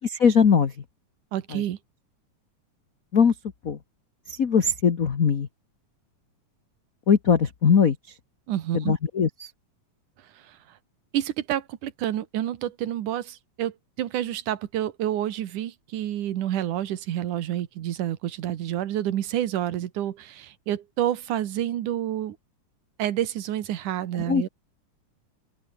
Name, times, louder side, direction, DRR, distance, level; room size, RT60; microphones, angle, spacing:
voice 1, 0.0-0.7 1.5-1.6 3.1-3.3 3.6-3.8 4.3-5.5 7.1-8.0 8.7-9.5 24.1-24.5, left 6 dB, 50° left, 1.1 m, -21 dB
voice 2, 1.3-1.8 8.5-8.9 10.5-10.6 11.1-22.4 23.0-24.5, right 12 dB, 90° right, 2.9 m, -29 dB
open air
omnidirectional pair, 3.5 m